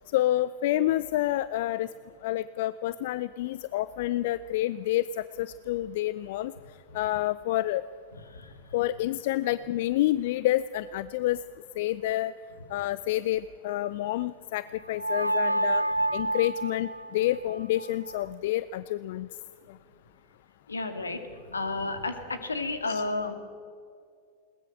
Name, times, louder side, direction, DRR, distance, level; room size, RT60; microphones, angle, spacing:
voice 1, 0.1-1.9 2.2-6.5 6.9-7.9 8.7-11.4 11.8-12.3 12.7-15.8 16.1-19.3 22.9-23.0, left 14 dB, 50° left, 17 dB, 0.5 m, -28 dB
sound 1, 15.0-18.2, right 2 dB, 90° right, 0.5 m, -29 dB
voice 2, 20.7-21.2 21.5-23.3, left 3 dB, 75° left, 8 dB, 2.2 m, -31 dB
21.5 x 19.5 x 7.7 m, 2.3 s
figure-of-eight pair, 90°, 0 cm